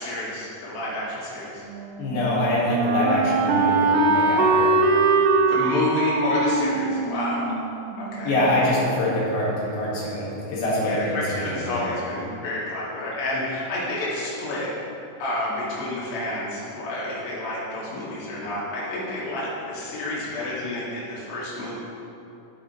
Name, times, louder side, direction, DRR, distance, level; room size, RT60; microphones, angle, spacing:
voice 1, 0.0-1.6 5.5-7.5 8.0-8.3 10.8-14.7 15.2-21.8, left 1 dB, 75° left, -8 dB, 4.5 m, -29 dB
Wind instrument woodwind instrument, 1.7-8.6, right 3 dB, 85° right, 3.1 m, -22 dB
voice 2, 2.0-4.8 8.2-11.8, left 1 dB, 60° left, -6 dB, 3.3 m, -24 dB
12.5 x 8.0 x 3.2 m, 2.9 s
omnidirectional pair, 5.6 m